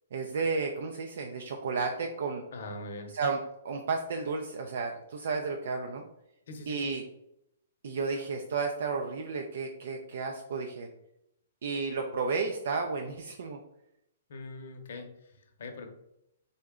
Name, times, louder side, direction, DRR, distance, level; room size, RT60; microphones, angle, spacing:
voice 1, 0.1-2.4 3.1-6.0 6.7-7.0 7.8-10.9 11.6-13.6, right 4 dB, 60° right, 3 dB, 0.4 m, -32 dB
voice 2, 2.5-3.1 6.5-6.9 14.3-15.9, left 2 dB, 60° left, 4 dB, 0.7 m, -42 dB
3.7 x 2.2 x 3.5 m, 0.79 s
hypercardioid pair, 170°, 0 cm